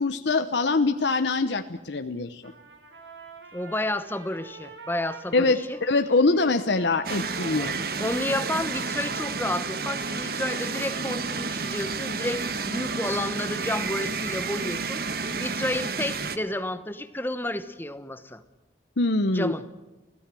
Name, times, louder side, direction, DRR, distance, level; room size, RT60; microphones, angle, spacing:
voice 1, 0.0-2.5 5.3-7.8 19.0-19.5, left 3 dB, 75° left, 8 dB, 0.9 m, -24 dB
Trumpet, 2.4-10.8, right 3 dB, 80° right, 6.1 m, -46 dB
voice 2, 3.5-5.8 6.8-7.1 7.4-18.4 19.3-19.6, left 1 dB, 10° left, 12 dB, 1.0 m, -31 dB
sound 1, 7.0-16.4, right 4 dB, 55° right, 1.3 m, -31 dB
29.0 x 16.0 x 7.6 m, 1.1 s
head